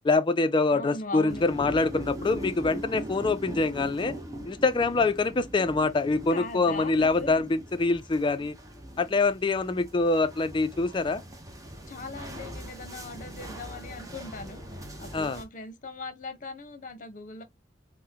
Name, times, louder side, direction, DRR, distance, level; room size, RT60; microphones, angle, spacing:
voice 1, 0.0-4.1 4.5-8.6 9.0-11.2 15.1-15.4, left 3 dB, 25° left, 0.3 m, -25 dB
voice 2, 0.7-1.5 6.3-7.3 11.9-14.6 15.0-17.4, left 3 dB, 45° left, 0.7 m, -39 dB
sound 1, 1.3-15.4, right 1 dB, 20° right, 0.6 m, -41 dB
3.6 x 2.1 x 2.7 m
head